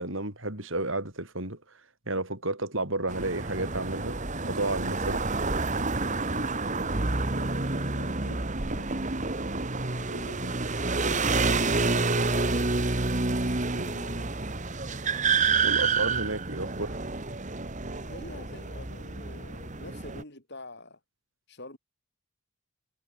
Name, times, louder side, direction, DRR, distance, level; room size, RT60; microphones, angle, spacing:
voice 1, 0.0-1.6 2.1-4.2 4.4-5.2 15.6-17.0, right 2 dB, 65° right, 6.2 m, -31 dB
sound 1, 3.1-20.2, right 3 dB, 35° right, 1.9 m, -29 dB
voice 2, 4.9-5.3 6.0-9.2 9.9-10.6 11.0-13.3 13.7-14.4 15.9-16.1 17.9-21.0 21.5-21.8, left 2 dB, 50° left, 7.8 m, -47 dB
head